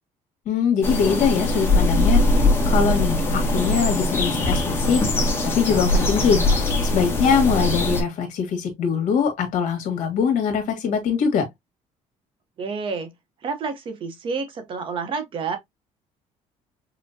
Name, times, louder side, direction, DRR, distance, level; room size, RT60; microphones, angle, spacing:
voice 1, 0.4-2.2 2.7-5.0 5.4-6.5 6.8-11.5, left 6 dB, 65° left, 1.6 m, -22 dB
sound 1, 0.8-8.0, left 1 dB, 15° left, 1.0 m, -21 dB
sound 2, 4.5-7.2, left 5 dB, 45° left, 1.3 m, -36 dB
voice 2, 12.6-13.1 13.4-15.6, right 5 dB, 40° right, 0.8 m, -29 dB
5.6 x 2.1 x 2.6 m
cardioid pair, 165°, 13 cm